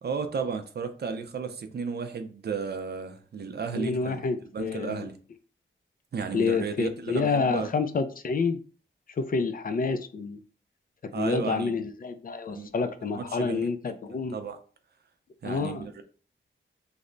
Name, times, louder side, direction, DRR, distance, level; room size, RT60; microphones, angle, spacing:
voice 1, 0.0-4.2 4.5-5.2 6.1-7.7 11.1-11.8 12.5-12.7 13.0-13.7 14.1-14.6 15.4-16.0, right 5 dB, 55° right, 0.5 m, -33 dB
voice 2, 3.7-5.1 6.3-8.6 9.2-10.4 11.1-14.3 15.4-15.9, left 4 dB, 45° left, 0.4 m, -28 dB
3.2 x 2.0 x 3.7 m
wide cardioid pair, 140°, 20 cm